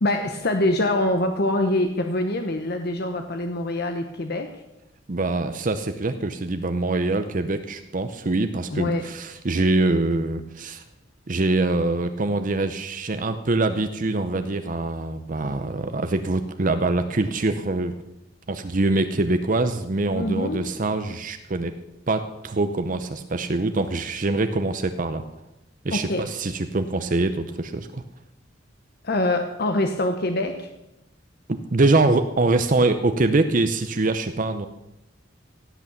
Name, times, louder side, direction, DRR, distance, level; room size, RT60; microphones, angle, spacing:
voice 1, 0.0-4.5 8.7-9.1 20.1-20.7 25.9-26.3 29.0-30.7, left 1 dB, 55° left, 6 dB, 0.9 m, -24 dB
voice 2, 5.1-10.8 11.3-17.9 18.5-21.7 22.1-25.2 25.8-28.0 31.5-34.7, right 2 dB, 45° right, 9 dB, 0.7 m, -24 dB
17.0 x 8.2 x 7.0 m, 0.90 s
head